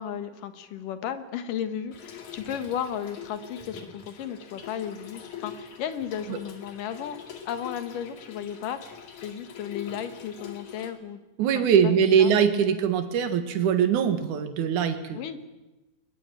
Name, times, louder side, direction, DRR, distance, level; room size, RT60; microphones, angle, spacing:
voice 1, 0.0-7.2 7.5-11.2 11.5-11.9 12.2-12.3 15.1-15.4, left 9 dB, 80° left, 10 dB, 3.0 m, -34 dB
Trickle dribble / Fill (with liquid), 1.9-10.9, left 7 dB, 65° left, 3.6 m, -43 dB
voice 2, 11.4-15.4, right 7 dB, 70° right, 7 dB, 3.0 m, -22 dB
21.5 x 20.5 x 9.0 m, 1.1 s
omnidirectional pair, 3.7 m